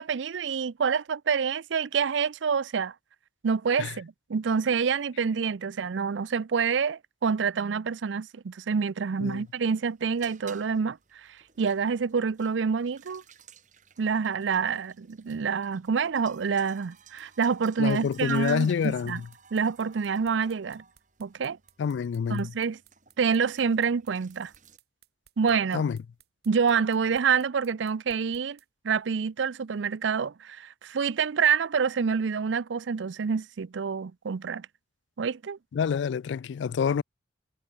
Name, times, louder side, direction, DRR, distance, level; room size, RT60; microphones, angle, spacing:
voice 1, 0.0-2.9 3.4-11.0 11.6-13.2 14.0-19.2 19.5-20.8 21.2-21.6 22.3-22.8 23.2-24.5 25.4-25.8 26.5-28.6 28.8-34.7 35.2-35.6, right 6 dB, 85° right, 0.5 m, -27 dB
sound 1, 9.3-24.8, right 7 dB, 40° right, 3.2 m, -56 dB
sound 2, 17.0-28.7, right 9 dB, 55° right, 3.5 m, -60 dB
voice 2, 17.8-19.3 21.8-22.5 25.7-26.0 35.7-37.0, left 6 dB, 75° left, 0.3 m, -27 dB
head